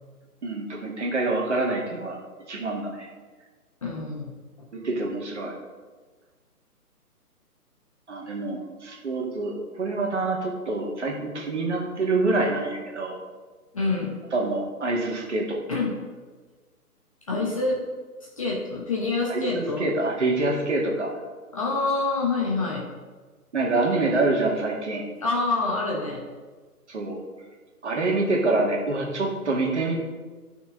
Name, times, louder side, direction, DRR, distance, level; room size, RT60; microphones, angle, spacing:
voice 1, 0.4-2.2 2.5-3.1 4.7-5.5 8.1-13.2 14.3-15.6 19.3-21.1 23.5-25.0 26.9-27.2 27.8-30.0, right 2 dB, 45° right, 0 dB, 1.9 m, -26 dB
voice 2, 3.8-4.7 13.7-14.1 15.7-15.9 17.3-17.8 18.4-19.9 21.5-22.8 25.2-26.2, left 3 dB, 20° left, -2 dB, 0.9 m, -26 dB
12.0 x 6.0 x 3.8 m, 1.4 s
figure-of-eight pair, 140°, 47 cm